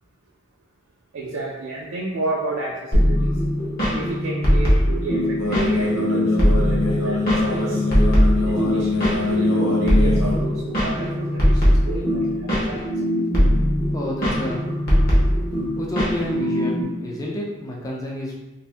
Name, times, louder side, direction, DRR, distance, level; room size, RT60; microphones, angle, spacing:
voice 1, 1.1-3.3 3.9-6.3 6.6-7.9 8.4-12.8 16.4-16.7, right 2 dB, 65° right, -3 dB, 0.4 m, -31 dB
sound 1, 2.9-16.8, equal, 45° left, 0.9 m, -20 dB
sound 2, 5.4-10.4, left 3 dB, 85° left, 0.6 m, -23 dB
voice 2, 13.9-14.6 15.8-18.3, left 1 dB, 15° left, -3 dB, 0.3 m, -29 dB
2.6 x 2.5 x 3.3 m, 1.1 s
head